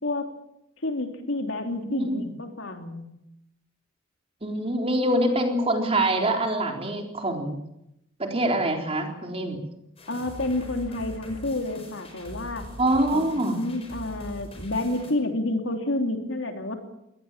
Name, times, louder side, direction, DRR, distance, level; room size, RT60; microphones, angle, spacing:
voice 1, 0.0-0.4 0.8-3.1 10.1-12.7 13.1-16.7, left 2 dB, 75° left, 5 dB, 3.1 m, -29 dB
voice 2, 1.7-2.2 4.4-7.6 8.2-9.6 12.8-13.6, right 1 dB, 30° right, 2 dB, 3.9 m, -25 dB
sound 1, 10.0-15.1, equal, 30° left, 5.6 m, -42 dB
23.5 x 18.0 x 7.5 m, 0.83 s
head